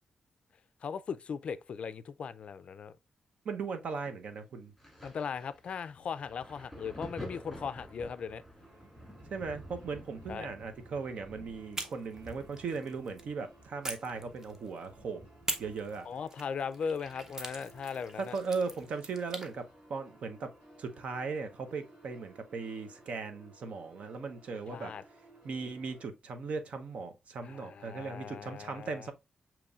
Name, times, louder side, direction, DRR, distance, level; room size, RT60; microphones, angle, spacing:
voice 1, 0.8-2.9 5.0-8.4 10.3-10.5 16.1-18.4 24.7-25.0 27.4-29.1, left 6 dB, 60° left, 0.3 m, -38 dB
voice 2, 3.4-4.7 9.3-15.2 15.6-16.1 18.2-20.5 20.8-24.9 25.4-29.1, right 4 dB, 70° right, 0.7 m, -38 dB
Thunder, 4.8-18.1 18.4-19.7 20.6-20.7, equal, ahead, 2.0 m, -51 dB
sound 1, 8.6-26.1, right 1 dB, 50° right, 2.6 m, -59 dB
sound 2, 11.7-13.3 13.8-14.9 15.5-19.5, right 2 dB, 20° right, 0.7 m, -43 dB
6.8 x 3.0 x 2.4 m
wide cardioid pair, 130°, 2 cm